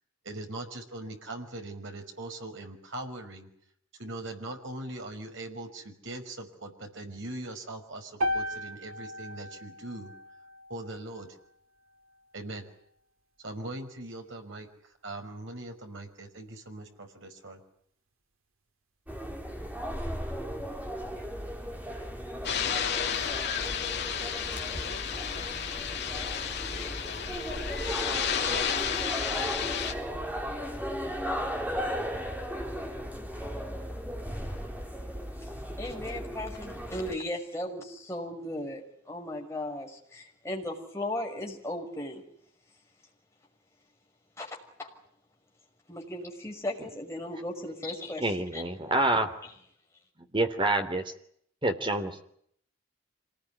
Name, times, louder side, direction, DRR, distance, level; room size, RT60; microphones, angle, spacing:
voice 1, 0.2-3.5 4.0-10.1 10.7-11.4 12.3-12.6 13.4-17.6, right 2 dB, 60° right, 4 dB, 5.5 m, -41 dB
sound 1, 8.2-12.4, equal, 85° right, 2.0 m, -36 dB
sound 2, 19.1-37.1, equal, 10° right, 3.2 m, -36 dB
sound 3, 22.4-29.9, left 8 dB, 55° left, 2.6 m, -32 dB
voice 2, 35.8-42.2 44.4-44.9 45.9-48.6, left 1 dB, 15° left, 0 dB, 6.1 m, -36 dB
voice 3, 48.2-49.3 50.3-51.0 51.6-52.2, right 2 dB, 25° right, 7 dB, 3.1 m, -27 dB
26.5 x 19.5 x 9.9 m, 0.68 s
head